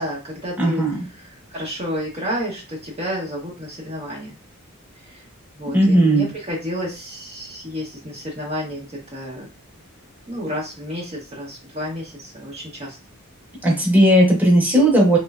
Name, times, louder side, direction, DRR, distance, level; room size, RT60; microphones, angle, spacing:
voice 1, 0.0-4.4 4.9-5.3 5.5-9.5 10.3-13.0, equal, 30° right, -4 dB, 0.9 m, -31 dB
voice 2, 0.6-1.0 5.7-6.3 13.6-15.2, right 1 dB, 10° right, -3 dB, 1.2 m, -16 dB
3.1 x 3.0 x 2.4 m, 0.30 s
head